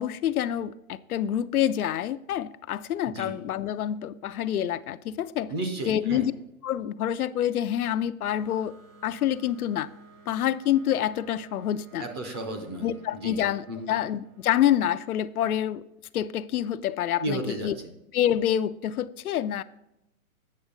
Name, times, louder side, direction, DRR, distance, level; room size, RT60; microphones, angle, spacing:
voice 1, 0.0-5.5 5.8-6.3 6.6-8.7 9.0-9.9 10.3-12.1 12.8-15.8 16.1-17.8 18.1-19.6, left 11 dB, 85° left, 0.6 m, -27 dB
voice 2, 5.5-6.3 12.0-13.4 13.7-13.9 17.2-17.7, right 1 dB, 20° right, 0.5 m, -33 dB
sound 1, 8.2-15.6, right 3 dB, 70° right, 2.1 m, -54 dB
8.5 x 6.3 x 3.7 m
hypercardioid pair, 155°, 43 cm